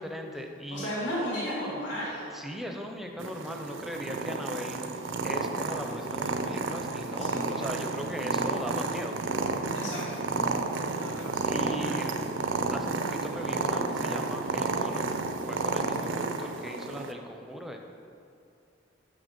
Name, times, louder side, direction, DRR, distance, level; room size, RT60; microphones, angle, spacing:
voice 1, 0.0-0.9 2.3-4.8 5.2-9.1 11.2-12.3 12.7-15.1 15.5-17.8, equal, ahead, 3 dB, 0.5 m, -39 dB
voice 2, 0.7-2.3 7.1-7.8 9.7-10.2 10.5-10.6 10.9-11.5, equal, 65° left, -9 dB, 2.0 m, -35 dB
Purr, 3.2-17.1, right 3 dB, 80° right, 0.6 m, -31 dB
6.3 x 5.8 x 6.7 m, 2.5 s
head